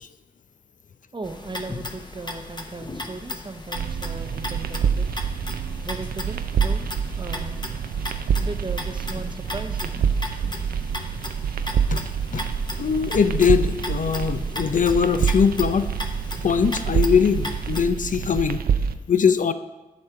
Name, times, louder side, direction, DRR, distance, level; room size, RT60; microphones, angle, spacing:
voice 1, 1.1-5.1 5.8-6.8 7.2-7.6 8.4-9.9, right 3 dB, 30° right, 8 dB, 0.7 m, -36 dB
sound 1, 1.2-17.8, left 2 dB, 30° left, 0.9 m, -36 dB
sound 2, 3.8-18.9, right 7 dB, 75° right, 0.4 m, -26 dB
voice 2, 12.8-15.9 16.4-18.6 19.1-19.5, left 6 dB, 60° left, 10 dB, 0.5 m, -21 dB
8.3 x 4.7 x 5.6 m, 1.1 s
cardioid pair, 40°, 15 cm